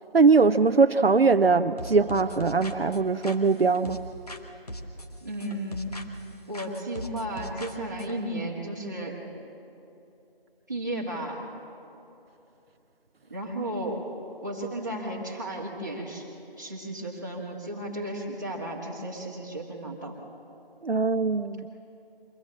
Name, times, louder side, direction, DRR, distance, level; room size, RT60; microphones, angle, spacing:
voice 1, 0.1-4.0 20.8-21.7, right 4 dB, 80° right, 10 dB, 0.7 m, -21 dB
sound 1, 1.8-4.4 4.7-6.3 6.5-8.1, equal, 40° left, 1.2 m, -40 dB
voice 2, 5.2-6.0 6.5-9.2 10.7-11.4 13.3-14.1 14.4-16.3 16.6-20.1, right 1 dB, 20° right, -4 dB, 1.7 m, -34 dB
24.0 x 17.0 x 7.5 m, 2.9 s
figure-of-eight pair, 175°, 29 cm